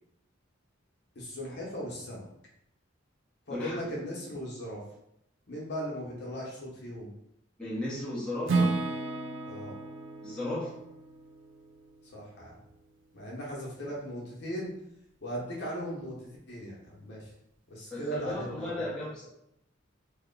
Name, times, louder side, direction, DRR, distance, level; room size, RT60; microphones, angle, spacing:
voice 1, 1.1-2.3 3.5-4.8 5.5-7.1 9.4-9.8 12.1-12.5 13.1-14.7 15.2-17.3 17.7-18.8, equal, 55° left, -4 dB, 0.9 m, -38 dB
voice 2, 7.6-8.8 10.2-10.8 17.9-19.3, left 1 dB, 5° left, -8 dB, 0.8 m, -35 dB
Acoustic guitar / Strum, 8.5-12.5, right 3 dB, 70° right, 0.5 m, -33 dB
2.9 x 2.2 x 3.8 m, 0.77 s
head